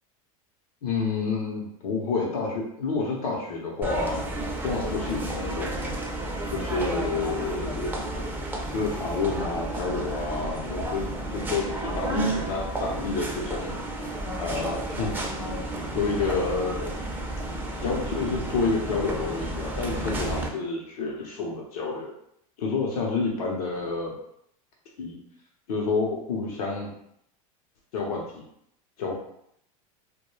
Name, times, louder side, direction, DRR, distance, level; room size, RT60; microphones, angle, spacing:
voice 1, 0.8-4.2 4.6-6.0 6.5-8.0 8.7-13.7 14.4-15.1 15.9-16.9 17.8-22.1 22.6-24.1 25.0-25.2 25.7-26.9 27.9-28.4 29.0-29.1, left 4 dB, 90° left, -2 dB, 0.7 m, -29 dB
sound 1, 3.8-20.5, right 1 dB, 10° right, 0.4 m, -32 dB
2.2 x 2.2 x 3.0 m, 0.73 s
supercardioid pair, 115°, 19 cm